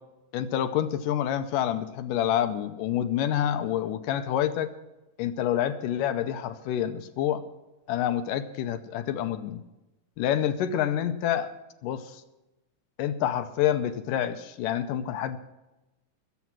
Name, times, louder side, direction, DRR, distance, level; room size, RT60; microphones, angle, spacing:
voice 1, 0.3-4.7 5.2-7.4 7.9-9.6 10.2-11.5 11.8-12.0 13.0-15.4, left 10 dB, 80° left, 10 dB, 2.2 m, -27 dB
20.0 x 8.2 x 6.1 m, 1.0 s
omnidirectional pair, 3.9 m